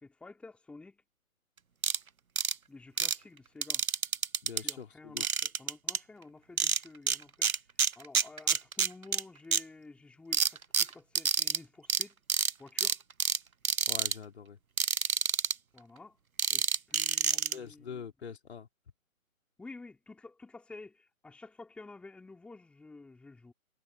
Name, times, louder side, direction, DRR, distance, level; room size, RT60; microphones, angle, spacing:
voice 1, 0.0-1.0 2.7-3.8 4.5-7.5 7.9-12.2 12.6-13.0 15.7-16.2 16.5-18.1 19.6-23.5, left 3 dB, 5° left, 3.1 m, -51 dB
sound 1, 1.8-2.0 2.4-2.5 3.0-3.2 3.6-4.7 5.2-6.0 6.6-7.2 7.4-9.2 9.5-9.6 10.3-11.6 11.9-12.0 12.3-12.5 12.8-13.4 13.6-14.1 14.8-15.5 16.4-17.5, right 6 dB, 75° right, 1.1 m, -28 dB
voice 2, 4.4-5.2 13.9-14.6 17.5-18.7, left 7 dB, 50° left, 4.7 m, -44 dB
figure-of-eight pair, 145°, 42 cm